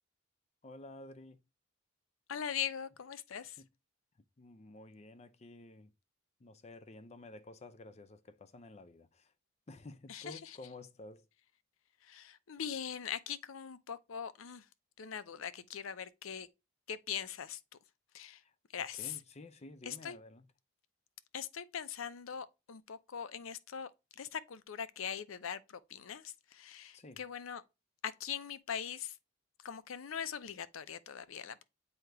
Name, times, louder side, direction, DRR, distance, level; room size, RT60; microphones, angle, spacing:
voice 1, 0.6-1.4 3.6-3.7 4.4-5.9 6.4-9.3 9.7-11.3 18.4-18.5 19.0-20.5 26.9-27.2, left 2 dB, 35° left, 0.5 m, -52 dB
voice 2, 2.3-3.6 10.1-10.6 12.0-14.7 15.0-16.5 16.9-17.6 18.1-18.4 18.7-19.2 19.9-20.2 21.3-27.6 28.0-29.2 29.6-31.6, left 8 dB, 85° left, 0.6 m, -41 dB
7.9 x 2.9 x 4.7 m
head